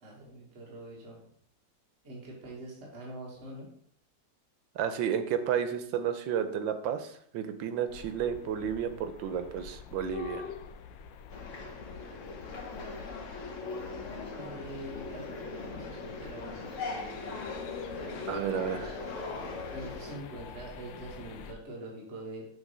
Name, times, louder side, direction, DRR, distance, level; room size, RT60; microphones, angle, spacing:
voice 1, 0.0-1.2 2.0-3.7 11.4-11.7 14.3-16.8 19.7-22.5, right 1 dB, 35° right, -4 dB, 1.8 m, -44 dB
voice 2, 4.7-10.5 18.3-19.0, right 8 dB, 85° right, 9 dB, 1.4 m, -32 dB
sound 1, 7.9-21.5, left 7 dB, 85° left, 1.3 m, -46 dB
sound 2, 11.3-20.2, left 3 dB, 50° left, 1.1 m, -40 dB
7.4 x 3.2 x 5.4 m, 0.66 s
omnidirectional pair, 2.0 m